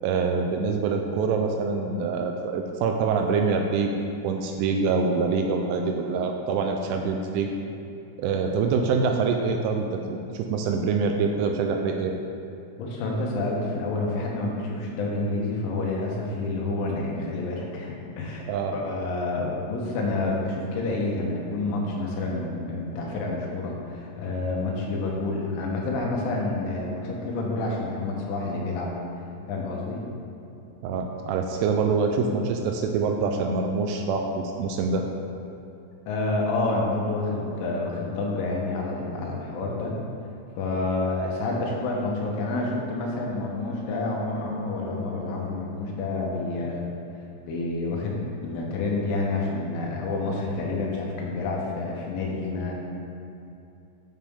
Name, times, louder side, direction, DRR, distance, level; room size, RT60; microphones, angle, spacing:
voice 1, 0.0-3.9 4.2-7.5 8.2-12.1 18.5-18.8 30.8-35.1, right 4 dB, 85° right, 3 dB, 2.9 m, -25 dB
voice 2, 12.8-18.5 18.7-28.9 29.5-30.1 36.1-40.0 40.6-46.8 47.5-52.7, left 2 dB, 80° left, -2 dB, 3.5 m, -28 dB
9.3 x 7.2 x 3.6 m, 2.7 s
omnidirectional pair, 5.8 m